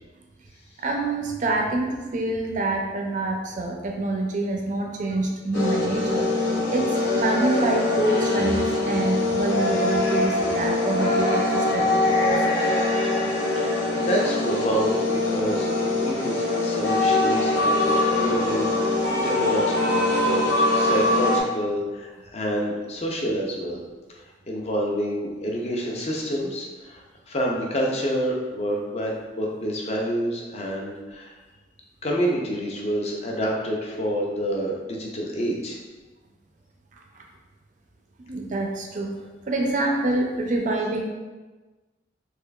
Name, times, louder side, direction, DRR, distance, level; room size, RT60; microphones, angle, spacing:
voice 1, 0.8-6.3 6.7-12.4 36.9-37.2 38.3-39.2 39.5-41.0, right 2 dB, 40° right, 2 dB, 0.4 m, -26 dB
sound 1, 5.5-21.4, left 2 dB, 80° left, 0.7 m, -23 dB
voice 2, 13.6-23.8 24.5-31.3 32.0-35.8, equal, 35° left, -1 dB, 0.5 m, -28 dB
3.6 x 3.2 x 2.3 m, 1.2 s
head